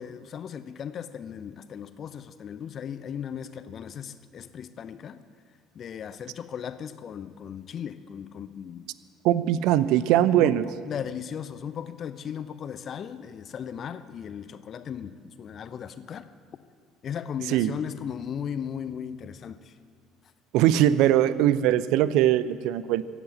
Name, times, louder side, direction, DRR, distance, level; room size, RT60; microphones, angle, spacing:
voice 1, 0.0-5.2 5.7-8.9 9.4-9.6 10.4-16.3 17.0-19.7, left 8 dB, 45° left, 13 dB, 0.7 m, -37 dB
voice 2, 9.2-10.6 17.5-17.7 20.5-23.0, right 12 dB, 60° right, 16 dB, 0.5 m, -21 dB
15.0 x 8.1 x 9.2 m, 2.1 s
figure-of-eight pair, 60°, 0 cm